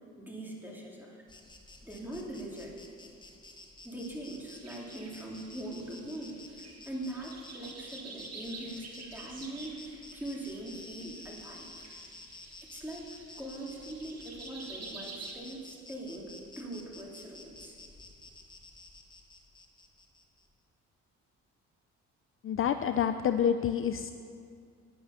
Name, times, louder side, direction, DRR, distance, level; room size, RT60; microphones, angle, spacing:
voice 1, 0.2-1.2 1.8-2.7 3.8-11.7 12.3-13.1 13.4-17.8, right 1 dB, 5° right, -3 dB, 2.6 m, -42 dB
Insect, 1.3-20.5, left 2 dB, 15° left, 1.3 m, -52 dB
sound 1, 4.5-15.3, right 3 dB, 55° right, 2.1 m, -49 dB
voice 2, 22.4-24.1, left 8 dB, 45° left, 9 dB, 0.5 m, -28 dB
11.0 x 9.8 x 5.7 m, 2.3 s
cardioid pair, 90°, 30 cm